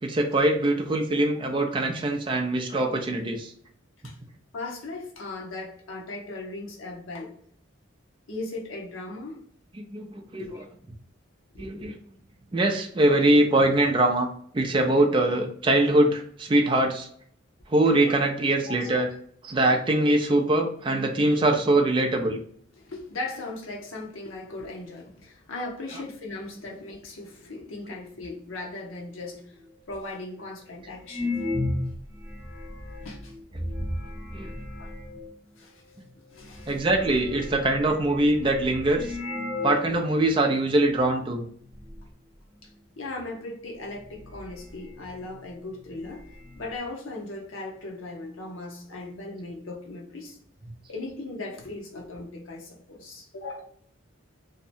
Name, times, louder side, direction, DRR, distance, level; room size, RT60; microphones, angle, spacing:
voice 1, 0.0-3.5 9.8-10.5 11.6-12.0 12.5-14.3 14.5-17.1 17.7-19.1 19.4-22.4 34.3-34.5 36.7-39.2 39.6-41.4, right 1 dB, 25° right, 3 dB, 0.4 m, -23 dB
voice 2, 4.5-7.3 8.3-9.4 10.4-10.7 11.5-11.9 18.0-18.1 18.6-19.0 22.8-29.6 29.9-31.5 33.0-33.3 34.8-34.9 35.6-35.8 36.3-36.8 42.6-42.7 43.0-46.2 46.6-50.4 50.9-53.6, left 2 dB, 85° left, -1 dB, 0.7 m, -38 dB
sound 1, 29.6-29.7 30.3-30.4 31.0-35.3 36.1-36.2 36.4-39.9 40.2-40.3 41.0-41.3 41.6-42.1 43.3-43.4 43.9-45.4 45.7-45.8 46.0-46.8, left 2 dB, 5° right, 1.0 m, -35 dB
2.7 x 2.1 x 2.6 m, 0.63 s
head